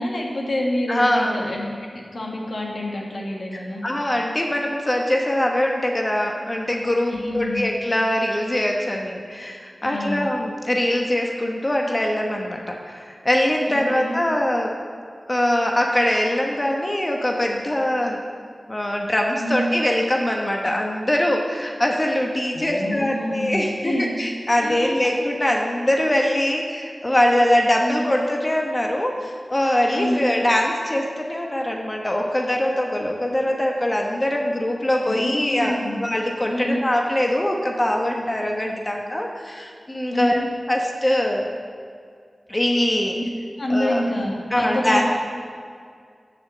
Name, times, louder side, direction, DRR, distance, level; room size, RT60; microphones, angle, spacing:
voice 1, 0.0-3.8 7.1-7.6 9.8-10.3 13.7-14.2 19.4-19.8 22.5-24.2 24.6-24.9 27.8-28.2 29.9-30.3 35.0-36.0 36.5-36.8 40.1-40.5 43.1-43.2 43.6-45.0, left 1 dB, 75° left, -2 dB, 1.5 m, -27 dB
voice 2, 0.9-1.4 3.8-14.7 15.3-18.2 18.7-40.4 40.7-41.5 42.5-43.2 43.7-44.0 44.5-45.1, left 1 dB, 25° left, 0 dB, 1.0 m, -22 dB
6.5 x 6.4 x 7.5 m, 2.1 s
cardioid pair, 45°, 0 cm